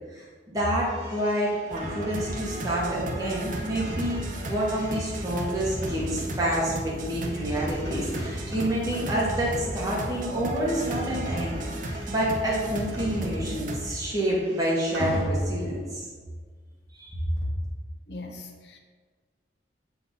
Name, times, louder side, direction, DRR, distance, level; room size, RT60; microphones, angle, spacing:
voice 1, 0.1-11.6 12.1-16.0 17.0-17.1, right 1 dB, 20° right, -6 dB, 1.6 m, -28 dB
sound 1, 0.8-10.0 10.3-13.8 14.0-15.9, right 1 dB, 80° right, 1.7 m, -38 dB
sound 2, 1.7-13.9, right 1 dB, 45° right, 0.6 m, -34 dB
voice 2, 18.1-18.8, left 2 dB, 65° left, 3 dB, 0.6 m, -40 dB
7.1 x 3.9 x 3.9 m, 1.5 s
head